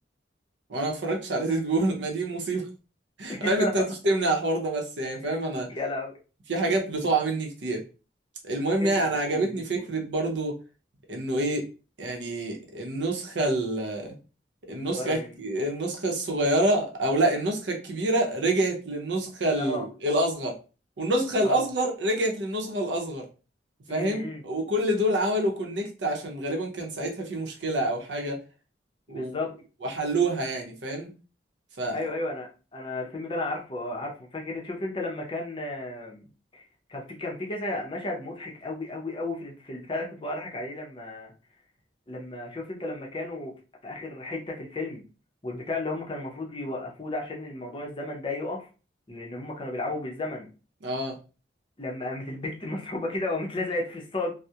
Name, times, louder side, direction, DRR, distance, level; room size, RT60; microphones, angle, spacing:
voice 1, 0.7-2.7 3.2-5.7 6.5-7.8 8.4-10.6 11.1-11.7 12.0-14.1 14.7-20.5 21.0-23.3 23.9-28.4 29.1-29.3 29.8-31.1 31.8-32.1 50.8-51.2, right 1 dB, 80° right, 0.6 m, -27 dB
voice 2, 3.3-3.7 5.2-5.4 5.7-6.2 8.8-9.9 14.8-15.4 19.6-19.9 21.4-21.6 23.9-24.4 29.1-29.5 31.9-36.6 36.9-41.3 42.1-43.5 43.8-45.0 45.4-48.7 49.1-50.5 51.8-54.3, left 2 dB, 30° left, 0.6 m, -33 dB
2.3 x 2.0 x 2.7 m
head